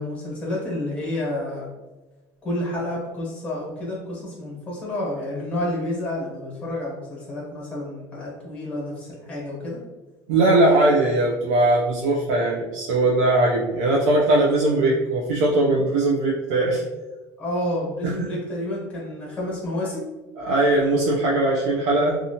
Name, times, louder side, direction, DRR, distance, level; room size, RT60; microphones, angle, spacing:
voice 1, 0.0-1.7 2.4-9.8 17.4-20.0, left 1 dB, 15° left, -4 dB, 1.1 m, -29 dB
voice 2, 10.3-16.8 18.0-18.3 20.4-22.2, right 2 dB, 85° right, -3 dB, 0.5 m, -20 dB
2.8 x 2.3 x 2.7 m, 1.1 s
cardioid pair, 165°, 9 cm